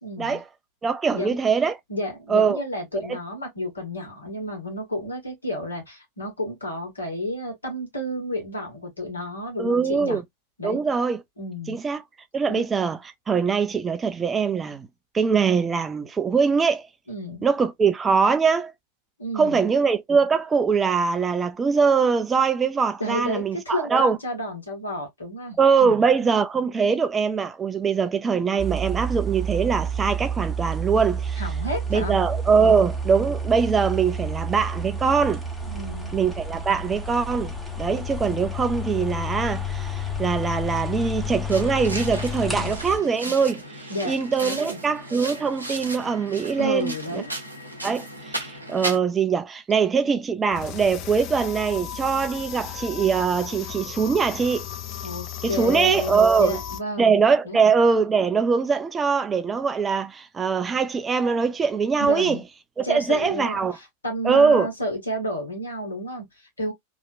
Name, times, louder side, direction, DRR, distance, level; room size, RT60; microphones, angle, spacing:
voice 1, 0.0-0.4 1.1-1.4 1.9-10.2 10.6-10.8 11.4-11.8 12.5-12.6 17.1-17.5 19.2-19.7 23.0-26.0 31.4-32.2 32.6-32.8 35.7-36.1 42.5-42.7 43.9-44.1 44.4-44.8 46.6-47.3 55.0-57.2 57.4-57.6 62.0-62.4 62.8-66.7, equal, 75° left, 1.4 m, -31 dB
voice 2, 0.8-1.8 2.3-2.6 9.6-10.2 10.6-11.2 11.7-12.0 12.3-14.9 15.1-16.9 17.4-18.7 19.3-24.2 25.6-31.4 31.9-35.4 36.1-43.6 44.0-47.2 47.8-54.6 55.4-56.6 57.0-62.4 62.8-63.8 64.2-64.7, right 5 dB, 20° right, 0.4 m, -22 dB
sound 1, 28.6-43.0, right 1 dB, 5° left, 0.8 m, -30 dB
sound 2, 41.5-49.0, right 1 dB, 85° right, 0.7 m, -35 dB
sound 3, 50.5-56.8, left 10 dB, 40° left, 0.4 m, -36 dB
2.8 x 2.4 x 2.3 m
figure-of-eight pair, 90°, 0 cm